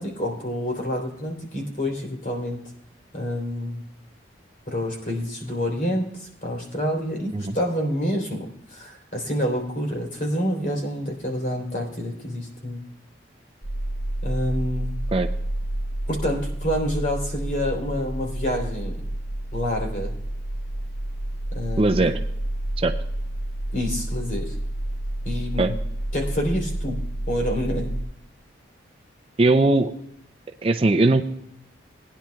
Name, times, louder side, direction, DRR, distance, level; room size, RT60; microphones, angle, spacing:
voice 1, 0.0-2.6 3.1-3.8 4.7-12.8 14.2-15.0 16.1-19.0 19.5-20.1 21.5-22.1 23.7-24.6 25.2-25.7 26.1-27.0 27.3-27.9, equal, 45° left, 0 dB, 3.5 m, -28 dB
sound 1, 13.6-28.0, right 1 dB, 80° left, 4.8 m, -29 dB
voice 2, 21.8-22.2 22.8-22.9 25.6-25.7 29.4-29.9 30.6-31.2, right 2 dB, 30° right, 6 dB, 0.5 m, -19 dB
20.5 x 10.0 x 2.3 m, 0.76 s
head